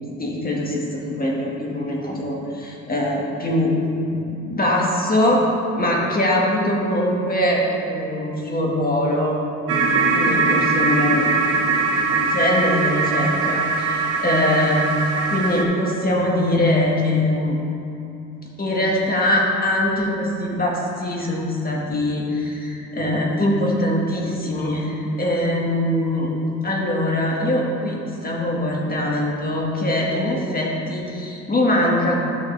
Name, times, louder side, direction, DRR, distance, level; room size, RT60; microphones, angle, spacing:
voice 1, 0.2-3.8 4.1-5.4 5.8-9.4 10.1-11.4 11.8-15.0 15.3-17.6 18.6-20.7 21.0-26.3 26.6-32.2, left 1 dB, 30° left, -2 dB, 1.8 m, -22 dB
sound 1, 9.7-15.6, right 4 dB, 50° right, 1.2 m, -21 dB
12.5 x 6.3 x 3.4 m, 2.8 s
cardioid pair, 90°, 30 cm